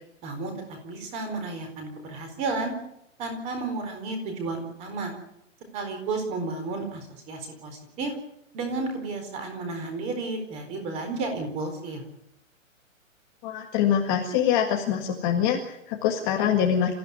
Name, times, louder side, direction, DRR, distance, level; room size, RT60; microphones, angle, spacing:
voice 1, 0.2-2.7 3.2-5.1 5.7-8.1 8.5-12.0, right 3 dB, 15° right, 5 dB, 4.2 m, -32 dB
voice 2, 13.4-16.9, left 9 dB, 15° left, 1 dB, 1.8 m, -24 dB
27.5 x 15.5 x 9.7 m, 0.82 s
hypercardioid pair, 170°, 39 cm